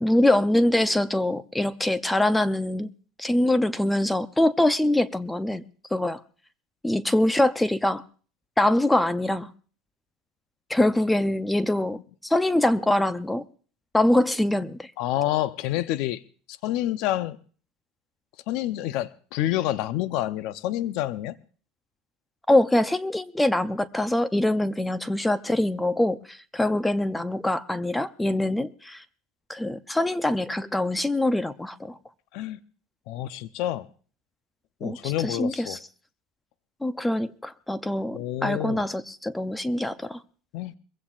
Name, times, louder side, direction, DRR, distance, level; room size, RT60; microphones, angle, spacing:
voice 1, 0.0-2.9 3.2-5.6 5.9-6.2 6.8-8.0 8.6-9.5 10.7-13.4 13.9-14.9 22.5-29.0 29.5-31.9 34.8-35.8 36.8-40.2, left 1 dB, 5° left, 13 dB, 0.6 m, -24 dB
voice 2, 15.0-16.2 16.5-17.4 18.5-21.4 32.3-32.6 33.1-33.9 34.8-35.8 38.1-38.8 40.5-40.8, left 14 dB, 65° left, 13 dB, 0.6 m, -28 dB
22.5 x 15.5 x 2.5 m, 0.41 s
supercardioid pair, 125°, 0 cm